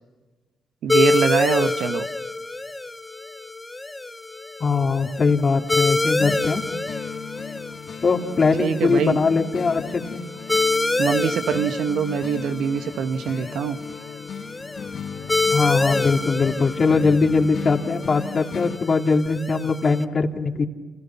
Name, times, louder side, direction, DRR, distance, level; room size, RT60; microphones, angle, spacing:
voice 1, 0.8-2.1 8.6-9.2 11.0-13.8, right 7 dB, 70° right, 9 dB, 1.5 m, -23 dB
sound 1, 0.9-20.0, left 3 dB, 15° left, 1.3 m, -27 dB
voice 2, 4.6-6.6 8.0-10.2 15.5-20.7, left 4 dB, 40° left, 3 dB, 2.7 m, -21 dB
sound 2, 6.2-18.8, left 7 dB, 65° left, 1.8 m, -36 dB
30.0 x 29.5 x 5.8 m, 1.3 s
cardioid pair, 90°, 0 cm